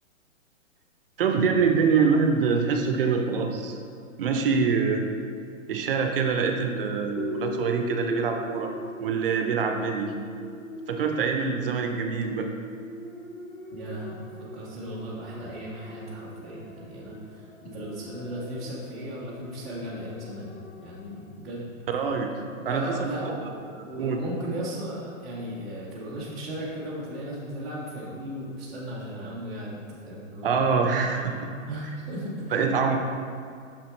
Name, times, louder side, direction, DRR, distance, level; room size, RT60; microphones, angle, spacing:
voice 1, 1.2-3.8 4.2-5.1 5.7-8.7 9.0-10.1 10.9-12.5 21.9-22.3 22.7-22.9 24.0-24.2 30.4-31.3 32.5-33.0, right 5 dB, 45° right, 4 dB, 0.6 m, -24 dB
sound 1, 7.2-21.4, left 1 dB, 85° left, 1.1 m, -40 dB
voice 2, 13.7-20.5 20.8-21.7 22.6-30.5 31.1-31.3 31.7-33.0, right 1 dB, ahead, -14 dB, 0.5 m, -36 dB
6.5 x 5.8 x 3.2 m, 2.3 s
hypercardioid pair, 155°, 40 cm